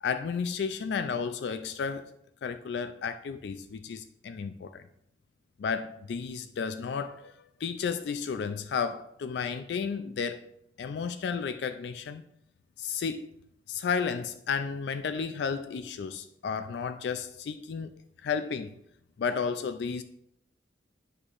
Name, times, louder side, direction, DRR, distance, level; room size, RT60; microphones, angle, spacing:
voice 1, 0.0-2.1 2.4-4.9 5.6-10.4 10.8-12.2 12.8-13.3 13.7-17.9 18.2-18.7 19.2-20.0, left 6 dB, 65° left, 0.3 m, -32 dB
8.8 x 6.4 x 2.5 m
head